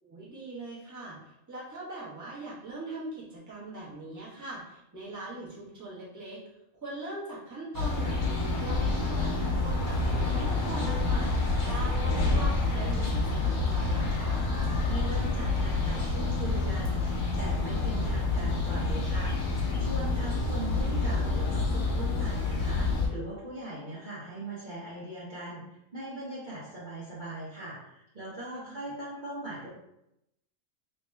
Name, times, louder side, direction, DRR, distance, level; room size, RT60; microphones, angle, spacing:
voice 1, 0.0-6.4 6.8-14.4 20.1-20.4 28.6-28.8, right 2 dB, 15° right, -7 dB, 1.0 m, -41 dB
sound 1, 7.7-23.1, left 3 dB, 75° left, 1.4 m, -28 dB
voice 2, 14.9-17.0 17.3-29.7, right 1 dB, 40° right, -9 dB, 1.0 m, -40 dB
3.1 x 3.0 x 3.4 m, 0.83 s
omnidirectional pair, 1.4 m